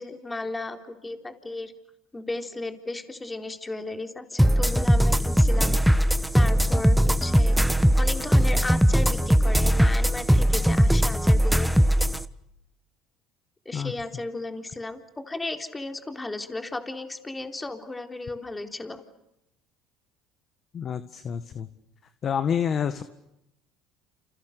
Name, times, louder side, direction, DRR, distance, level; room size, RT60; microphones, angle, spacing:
voice 1, 0.0-1.7 2.1-5.8 6.3-7.6 8.0-11.7 13.7-19.0, left 2 dB, 15° left, 6 dB, 3.8 m, -35 dB
sound 1, 4.4-12.2, equal, ahead, 1.2 m, -20 dB
voice 2, 20.7-21.7 22.2-23.0, left 8 dB, 45° left, 11 dB, 1.7 m, -28 dB
29.0 x 29.0 x 6.8 m, 0.86 s
supercardioid pair, 95°, 0 cm